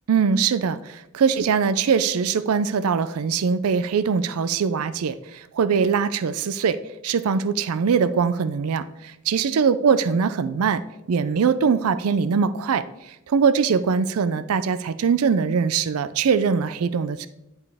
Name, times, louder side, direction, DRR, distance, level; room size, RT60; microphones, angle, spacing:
voice 1, 0.1-6.8 7.0-10.8 11.1-17.3, right 6 dB, 85° right, 14 dB, 0.4 m, -22 dB
10.5 x 5.3 x 3.5 m, 0.89 s
head